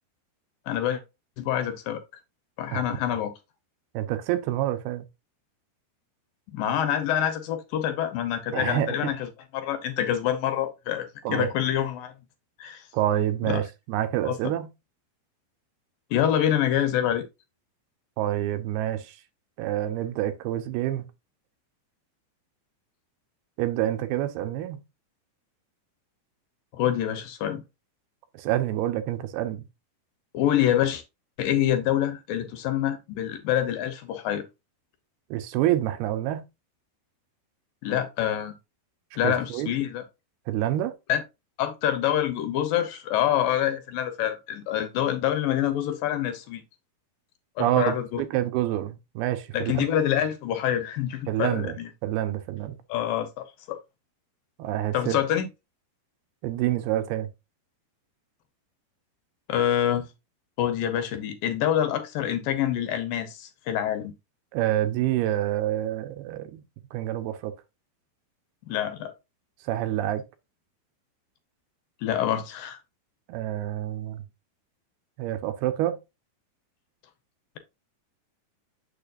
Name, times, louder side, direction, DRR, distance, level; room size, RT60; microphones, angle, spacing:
voice 1, 0.7-1.0 1.4-2.0 2.6-3.3 6.5-12.1 12.6-12.8 13.4-13.6 14.3-14.4 16.1-17.2 26.7-27.6 30.3-31.0 31.4-34.4 37.8-38.5 39.2-40.0 41.1-41.2 41.6-46.6 47.6-48.2 49.5-51.9 52.9-53.8 54.9-55.5 59.5-60.1 60.6-64.1 68.6-69.1 72.0-72.8, left 11 dB, 75° left, 2.5 m, -26 dB
voice 2, 3.9-5.0 8.5-9.2 11.2-11.5 12.9-14.7 18.2-19.2 19.6-21.1 23.6-24.8 28.3-29.7 35.3-36.4 39.2-39.8 40.5-40.9 47.6-49.9 51.3-51.8 52.0-52.8 54.6-55.2 56.4-57.3 64.5-66.6 66.9-67.5 69.6-70.2 73.3-74.2 75.2-76.0, right 13 dB, 85° right, 2.8 m, -27 dB
6.9 x 6.8 x 2.5 m
omnidirectional pair, 4.4 m